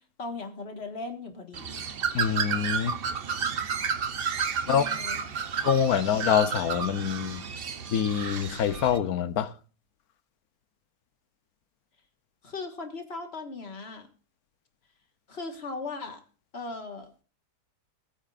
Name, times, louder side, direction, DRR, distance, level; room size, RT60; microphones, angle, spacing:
voice 1, 0.0-1.8 4.6-5.3 12.4-14.1 15.3-16.2 16.5-17.2, left 3 dB, 35° left, 1.8 m, -38 dB
Bird, 1.5-9.0, right 6 dB, 50° right, 0.7 m, -31 dB
voice 2, 2.1-3.0 4.7-4.8 5.6-7.5 7.9-9.5, left 8 dB, 65° left, 1.2 m, -25 dB
Wind instrument woodwind instrument, 4.8-9.0, right 3 dB, 30° right, 3.5 m, -51 dB
19.5 x 8.9 x 2.5 m
omnidirectional pair, 1.9 m